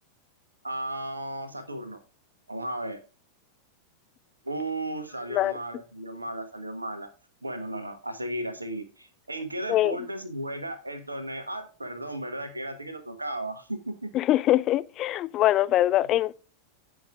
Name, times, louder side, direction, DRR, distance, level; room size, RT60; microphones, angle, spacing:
voice 1, 0.6-2.0 2.5-3.0 4.4-7.1 7.4-14.1, right 1 dB, 80° right, 1.3 m, -35 dB
voice 2, 14.1-16.3, left 14 dB, 35° left, 0.4 m, -23 dB
18.0 x 6.3 x 2.4 m
figure-of-eight pair, 90°, 0 cm